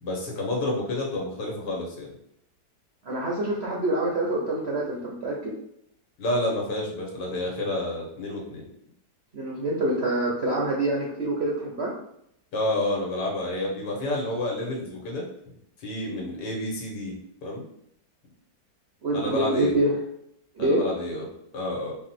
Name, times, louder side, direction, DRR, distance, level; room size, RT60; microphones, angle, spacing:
voice 1, 0.0-2.1 6.2-8.7 12.5-15.2 15.8-17.1 17.4-17.6 19.1-19.7 20.6-21.3 21.5-22.0, left 1 dB, 80° left, -1 dB, 1.7 m, -29 dB
voice 2, 3.1-5.5 9.3-11.9 16.0-16.3 19.0-19.9 20.6-20.8, right 1 dB, 60° right, -2 dB, 0.7 m, -26 dB
4.6 x 2.1 x 4.3 m, 0.73 s
omnidirectional pair, 1.9 m